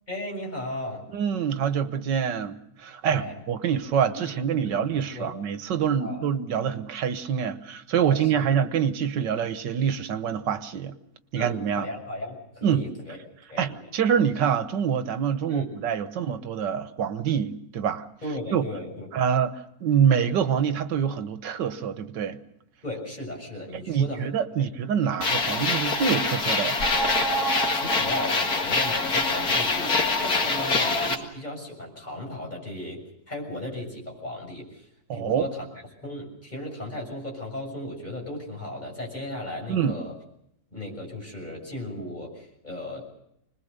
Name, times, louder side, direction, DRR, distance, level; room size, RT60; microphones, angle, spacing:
voice 1, 0.1-1.0 3.1-3.4 4.2-4.8 5.1-5.3 6.0-6.2 8.1-8.5 11.4-13.2 13.5-13.8 15.5-15.7 18.2-19.1 22.8-24.3 24.6-24.7 27.7-33.0 33.3-34.9 35.1-35.6 36.0-40.1 40.7-43.0, left 1 dB, 25° left, 0 dB, 6.9 m, -36 dB
voice 2, 1.1-10.9 11.3-11.9 12.6-12.8 13.6-18.1 18.5-18.6 19.1-22.4 23.7-26.9 35.1-35.5 39.7-40.0, right 8 dB, 85° right, 11 dB, 1.7 m, -26 dB
sound 1, 25.2-31.1, left 3 dB, 60° left, 2.4 m, -24 dB
25.5 x 20.5 x 6.7 m, 0.76 s
omnidirectional pair, 1.8 m